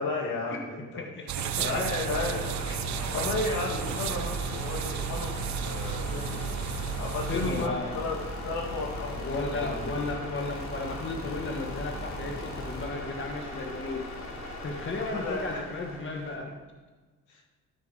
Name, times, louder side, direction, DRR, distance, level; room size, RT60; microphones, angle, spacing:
voice 1, 0.0-1.0 1.6-2.6 3.1-5.4 5.6-6.4 7.0-9.3 9.7-9.8 15.1-15.6 17.3-17.4, left 2 dB, 80° left, -1 dB, 2.3 m, -33 dB
voice 2, 1.0-1.6 2.7-2.8 3.7-3.9 7.3-8.0 9.2-14.0 14.6-16.5, left 3 dB, 40° left, 1 dB, 1.5 m, -34 dB
sound 1, 1.3-7.7, right 10 dB, 65° right, 0.6 m, -33 dB
sound 2, 1.4-16.4, left 1 dB, 65° left, 2.5 m, -38 dB
13.5 x 5.6 x 4.9 m, 1.3 s
cardioid pair, 90°, 30 cm